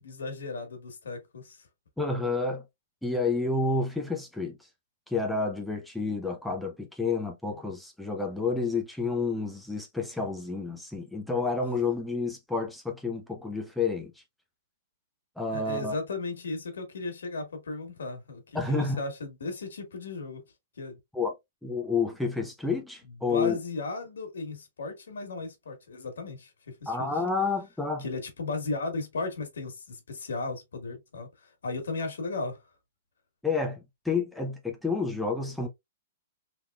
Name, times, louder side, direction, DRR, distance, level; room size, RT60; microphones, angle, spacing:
voice 1, 0.0-1.7 15.5-20.4 20.8-21.0 23.1-27.1 28.0-32.6, left 3 dB, 90° left, 1.6 m, -36 dB
voice 2, 2.0-2.6 3.0-4.6 5.1-14.1 15.4-15.9 18.5-19.0 21.1-21.3 21.6-23.6 26.9-28.0 33.4-35.7, left 4 dB, ahead, 0.7 m, -29 dB
3.6 x 2.9 x 2.3 m
hypercardioid pair, 140°, 0 cm